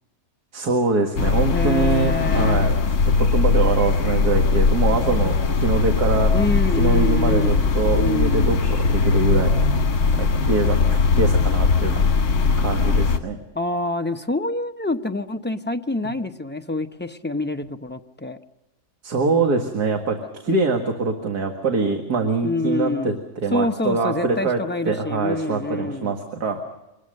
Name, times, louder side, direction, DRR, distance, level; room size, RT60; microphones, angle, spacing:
voice 1, 0.5-2.8 3.2-6.3 6.8-9.7 10.1-12.0 12.6-13.4 19.0-23.1 23.4-24.6 24.9-26.6, right 4 dB, 80° right, 3 dB, 2.3 m, -24 dB
sound 1, 1.2-13.2, left 4 dB, 70° left, 1.9 m, -19 dB
voice 2, 1.5-2.7 6.3-8.6 13.5-18.4 22.4-23.2 23.5-26.2, left 2 dB, 15° left, 6 dB, 0.4 m, -26 dB
25.0 x 20.5 x 6.6 m, 0.98 s
omnidirectional pair, 1.7 m